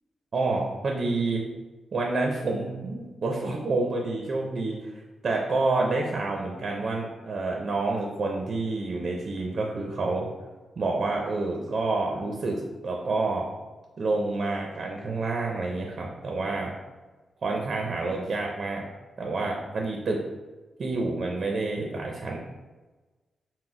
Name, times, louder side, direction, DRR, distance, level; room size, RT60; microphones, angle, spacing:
voice 1, 0.3-1.4 1.9-10.3 10.8-13.5 14.0-16.7 17.4-18.8 19.2-20.2 20.8-22.4, right 3 dB, 50° right, 0 dB, 0.6 m, -28 dB
6.0 x 2.2 x 3.7 m, 1.2 s
cardioid pair, 105°, 0 cm